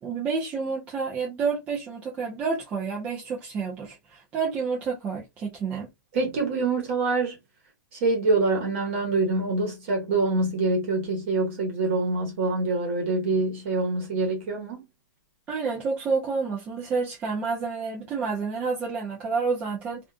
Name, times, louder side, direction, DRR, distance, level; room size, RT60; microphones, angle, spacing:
voice 1, 0.0-5.9 15.5-20.0, right 5 dB, 15° right, 0.4 m, -29 dB
voice 2, 6.1-7.4 7.9-14.8, right 3 dB, 40° right, 1.1 m, -25 dB
2.4 x 2.4 x 2.3 m
hypercardioid pair, 160°, 10 cm